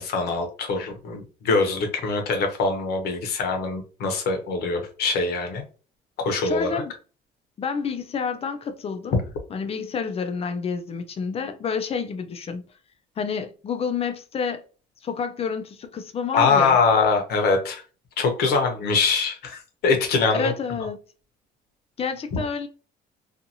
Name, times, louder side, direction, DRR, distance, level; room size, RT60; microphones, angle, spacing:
voice 1, 0.0-5.6 6.2-6.8 16.3-17.8 18.2-20.5 22.3-22.4, left 4 dB, 70° left, 0.9 m, -23 dB
voice 2, 6.4-6.9 7.6-9.2 9.5-12.6 13.2-14.6 15.0-16.8 20.3-21.0 22.0-22.7, left 6 dB, 35° left, 0.5 m, -29 dB
2.7 x 2.5 x 2.7 m
cardioid pair, 110°, 17 cm